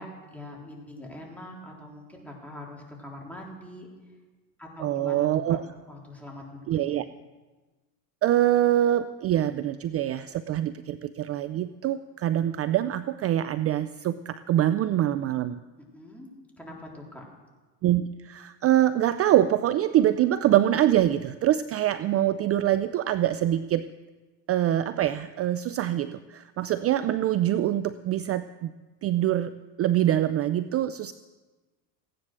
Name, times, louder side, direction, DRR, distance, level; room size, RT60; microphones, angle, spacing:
voice 1, 0.0-3.9 4.6-5.6 5.9-6.5 6.7-7.0 15.8-16.3 16.6-17.2, left 1 dB, 5° left, -2 dB, 3.8 m, -43 dB
voice 2, 4.8-5.6 6.7-7.0 8.2-15.6 17.8-23.8 24.5-28.7 29.0-29.5 29.8-31.1, right 12 dB, 35° right, 13 dB, 0.4 m, -24 dB
15.5 x 10.0 x 6.2 m, 1.2 s
supercardioid pair, 95°, 47 cm